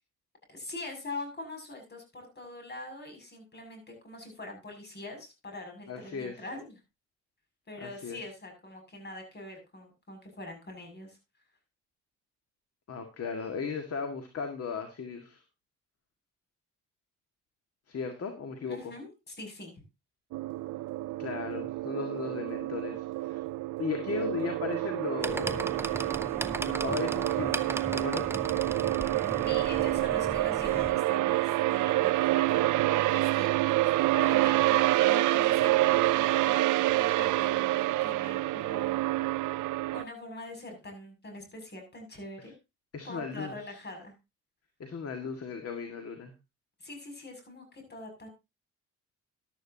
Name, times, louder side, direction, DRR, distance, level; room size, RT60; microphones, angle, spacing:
voice 1, 0.5-6.8 7.7-11.2 18.7-19.8 29.4-39.1 39.9-42.5 43.0-44.1 46.8-48.3, left 2 dB, 35° left, 4 dB, 7.0 m, -43 dB
voice 2, 5.9-6.4 7.8-8.2 12.9-15.4 17.9-18.8 21.2-23.4 23.8-26.1 26.6-28.4 42.4-42.5 42.9-43.8 44.8-46.3, left 5 dB, 50° left, 6 dB, 2.0 m, -36 dB
sound 1, 20.3-40.0, right 17 dB, 80° right, 0.6 m, -27 dB
sound 2, 25.2-30.9, right 2 dB, 10° right, 0.9 m, -37 dB
14.0 x 12.0 x 2.9 m, 0.25 s
cardioid pair, 90°, 30 cm